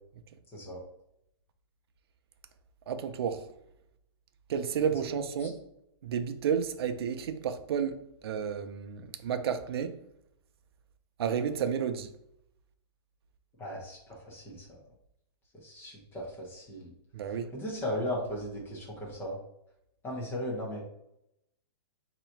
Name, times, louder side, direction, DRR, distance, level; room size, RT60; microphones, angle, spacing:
voice 1, 2.9-3.5 4.5-5.6 6.0-10.0 11.2-12.1 17.1-17.5, right 7 dB, 65° right, 0.6 m, -31 dB
voice 2, 13.6-14.8 15.6-16.9 17.5-19.4 20.0-20.8, left 1 dB, 15° left, 1.1 m, -37 dB
3.9 x 3.0 x 4.5 m
hypercardioid pair, 165°, 14 cm